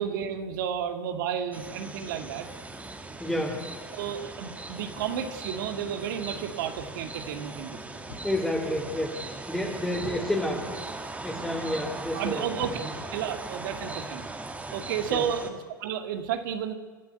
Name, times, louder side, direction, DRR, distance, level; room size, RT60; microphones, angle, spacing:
voice 1, 0.0-2.5 3.1-3.2 3.9-8.0 11.3-11.9 12.1-12.8 13.1-14.2 14.7-16.7, right 8 dB, 65° right, 7 dB, 2.2 m, -32 dB
sound 1, 1.5-15.5, right 2 dB, 10° right, 2.5 m, -39 dB
voice 2, 3.2-3.6 8.2-9.1 9.5-10.7 11.2-12.5 12.8-12.9 15.1-15.2, left 1 dB, 5° left, -2 dB, 3.3 m, -29 dB
sound 2, 8.1-9.1 9.8-10.2 12.2-13.1 14.1-14.3, left 3 dB, 80° left, 4.4 m, -47 dB
29.0 x 11.5 x 9.4 m, 1.4 s
hypercardioid pair, 85°, 12 cm